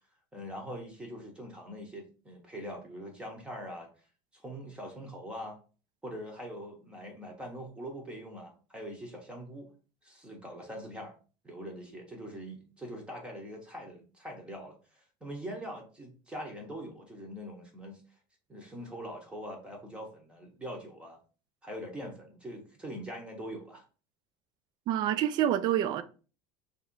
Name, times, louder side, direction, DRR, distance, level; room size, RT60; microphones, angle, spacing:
voice 1, 0.3-3.9 4.3-5.6 6.0-9.7 10.0-11.1 11.4-18.0 18.5-21.2 21.6-23.8, equal, 10° right, 0.8 m, -43 dB
voice 2, 24.9-26.0, right 11 dB, 40° right, 0.4 m, -27 dB
3.1 x 2.6 x 4.4 m
cardioid pair, 155°, 11 cm